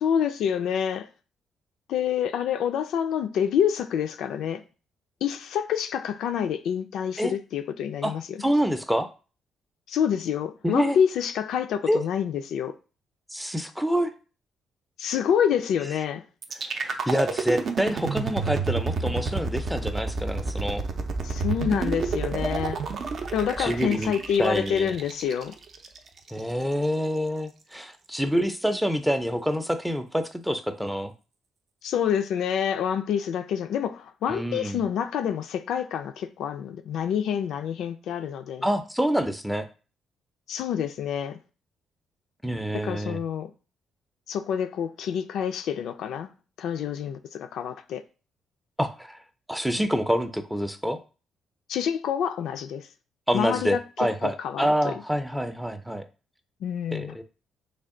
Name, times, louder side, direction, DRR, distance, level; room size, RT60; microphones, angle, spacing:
voice 1, 0.0-1.1 1.9-4.6 5.2-8.4 9.9-12.7 15.0-16.2 21.2-22.8 23.3-25.6 31.8-38.7 40.5-41.4 42.8-43.5 44.3-46.3 46.6-48.0 51.7-52.9 53.3-53.8 54.2-54.9 56.6-57.2, left 8 dB, 80° left, 0.3 m, -27 dB
voice 2, 8.4-9.1 10.6-11.0 11.9-12.0 13.3-14.1 16.7-20.8 23.6-24.1 24.4-24.9 26.3-31.1 34.3-34.8 38.6-39.7 42.4-43.2 48.8-49.2 49.5-51.0 53.3-56.0 56.9-57.2, equal, 5° right, 0.4 m, -27 dB
sound 1, 16.4-26.4, right 4 dB, 55° right, 0.5 m, -30 dB
3.3 x 2.2 x 3.6 m
cardioid pair, 90°, 0 cm